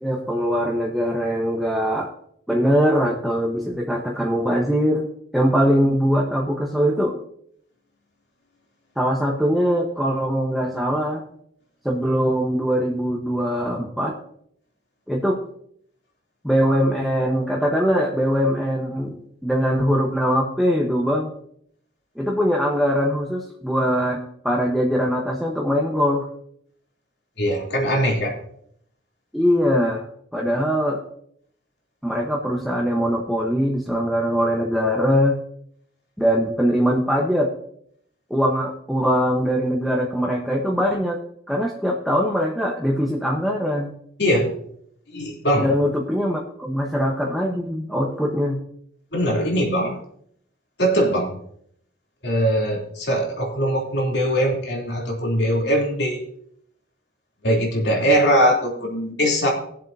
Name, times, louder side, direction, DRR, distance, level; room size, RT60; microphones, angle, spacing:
voice 1, 0.0-2.1 2.5-5.1 5.3-7.2 9.0-11.2 11.8-14.2 15.1-15.4 16.4-19.2 19.4-21.3 22.2-24.2 24.4-26.3 29.3-30.0 30.3-31.0 32.0-35.4 36.2-37.5 38.3-41.2 41.5-43.9 45.6-48.6, equal, ahead, -2 dB, 1.1 m, -22 dB
voice 2, 27.4-28.3 44.2-44.5 45.1-45.7 49.1-50.0 50.8-51.3 52.2-56.3 57.4-59.5, equal, 65° left, -2 dB, 3.1 m, -21 dB
20.0 x 7.4 x 2.7 m, 0.68 s
head